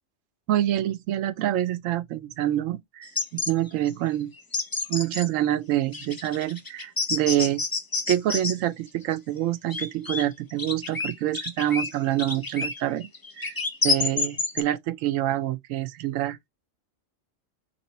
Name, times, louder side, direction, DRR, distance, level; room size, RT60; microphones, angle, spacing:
voice 1, 0.5-4.3 4.9-7.6 8.1-13.1 13.4-13.6 13.8-16.4, right 13 dB, 90° right, 1.0 m, -26 dB
sound 1, 3.0-3.5 3.9-4.0 4.4-5.3 5.9-8.5 9.1-10.2 10.5-14.6, left 4 dB, 25° left, 0.5 m, -28 dB
3.3 x 3.0 x 4.1 m
omnidirectional pair, 1.3 m